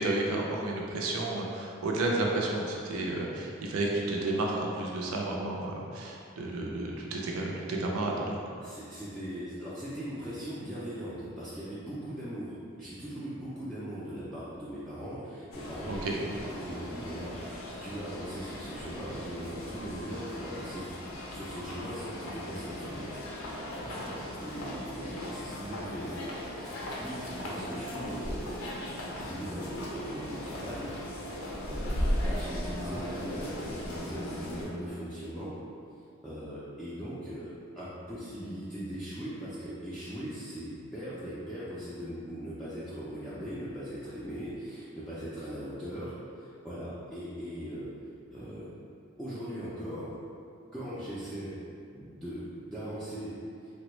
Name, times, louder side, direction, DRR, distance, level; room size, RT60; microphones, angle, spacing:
voice 1, 0.0-8.4 15.9-16.1, right 2 dB, 85° right, -1 dB, 0.5 m, -31 dB
voice 2, 8.6-28.6 29.1-30.9 31.3-31.4 31.7-35.6 36.2-46.1 46.4-47.9 48.3-48.7 49.2-50.1 50.7-51.6 51.9-53.3, equal, 5° left, -12 dB, 0.3 m, -39 dB
sound 1, 15.5-34.7, left 1 dB, 80° left, 0.5 m, -38 dB
3.3 x 2.1 x 3.0 m, 2.5 s
head